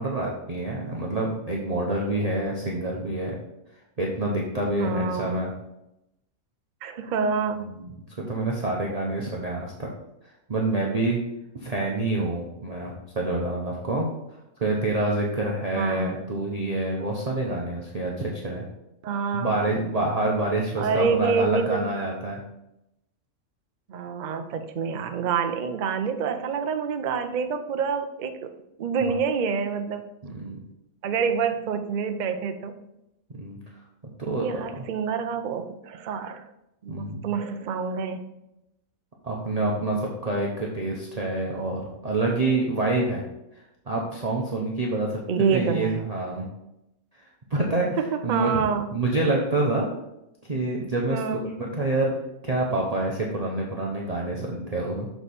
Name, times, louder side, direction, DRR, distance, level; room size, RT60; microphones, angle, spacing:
voice 1, 0.0-3.4 4.0-5.5 7.5-7.9 8.2-9.9 10.5-11.2 11.5-14.1 14.6-18.6 19.3-22.4 29.0-29.1 30.2-30.6 33.3-33.6 34.2-34.8 36.9-37.3 39.2-43.2 43.9-45.2 45.5-46.5 47.5-48.7 48.9-49.9 50.5-52.1 52.4-55.1, right 2 dB, 35° right, -2 dB, 0.8 m, -27 dB
voice 2, 4.8-5.4 6.8-7.8 15.7-16.2 19.0-19.8 20.8-21.9 23.9-28.5 28.8-30.1 31.0-32.8 34.4-36.4 36.8-38.2 45.3-46.0 48.0-48.9 51.1-51.5, right 6 dB, 80° right, 7 dB, 0.4 m, -27 dB
6.7 x 4.6 x 4.2 m, 0.87 s
omnidirectional pair, 1.5 m